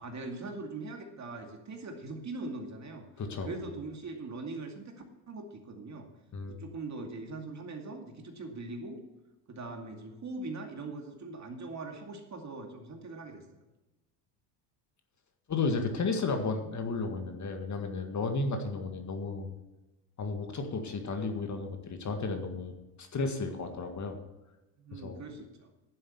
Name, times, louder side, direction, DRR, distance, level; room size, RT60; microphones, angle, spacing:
voice 1, 0.0-3.0 3.4-6.1 6.5-9.0 9.5-13.6 24.8-25.7, right 3 dB, 35° right, 3 dB, 2.3 m, -41 dB
voice 2, 3.2-3.5 6.3-6.6 15.5-19.5 20.2-24.2 24.9-25.2, left 3 dB, 35° left, 5 dB, 1.8 m, -33 dB
11.0 x 7.6 x 7.0 m, 1.0 s
supercardioid pair, 85°, 49 cm